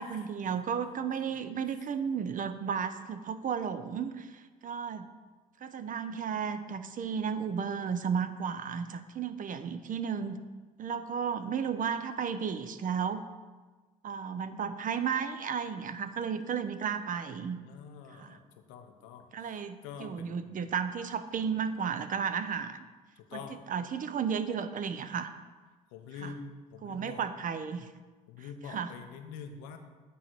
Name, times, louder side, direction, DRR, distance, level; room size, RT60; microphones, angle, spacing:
voice 1, 0.0-5.1 5.6-10.4 10.8-13.2 14.0-17.6 18.2-18.4 19.3-22.8 23.3-23.4 23.7-25.3 26.2-26.3 26.8-27.9 28.7-28.9, right 7 dB, 45° right, 10 dB, 0.7 m, -33 dB
voice 2, 17.6-20.6 23.2-23.6 25.9-27.2 28.3-29.8, left 6 dB, 75° left, 6 dB, 0.9 m, -46 dB
8.4 x 4.0 x 6.0 m, 1.3 s
hypercardioid pair, 60°, 20 cm